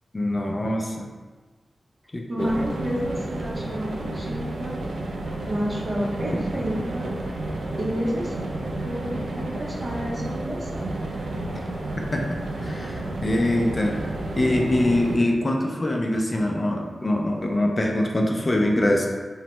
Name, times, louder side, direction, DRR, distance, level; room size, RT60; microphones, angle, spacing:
voice 1, 0.1-1.1 2.1-2.5 12.1-12.2 12.6-14.0 14.3-19.1, left 1 dB, 35° left, 1 dB, 0.4 m, -23 dB
voice 2, 2.3-4.8 5.5-7.1 7.8-10.9, equal, 45° right, -4 dB, 0.7 m, -30 dB
sound 1, 2.4-15.2, right 2 dB, 85° right, 0.4 m, -31 dB
3.1 x 2.1 x 2.9 m, 1.4 s
cardioid pair, 65°, 0 cm